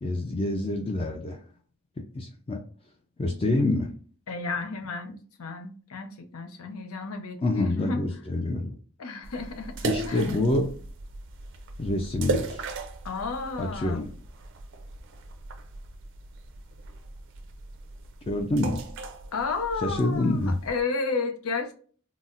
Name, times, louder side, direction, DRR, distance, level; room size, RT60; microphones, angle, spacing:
voice 1, 0.0-1.4 2.1-2.6 3.2-3.9 7.4-8.8 9.8-10.7 11.8-12.6 13.6-14.1 18.3-18.8 19.8-20.5, left 2 dB, 25° left, 0.4 m, -26 dB
voice 2, 4.3-8.0 9.0-10.3 13.0-14.0 19.3-21.7, left 4 dB, 90° left, 0.6 m, -32 dB
sound 1, 9.2-20.8, right 3 dB, 60° right, 0.5 m, -37 dB
3.9 x 2.0 x 2.4 m
head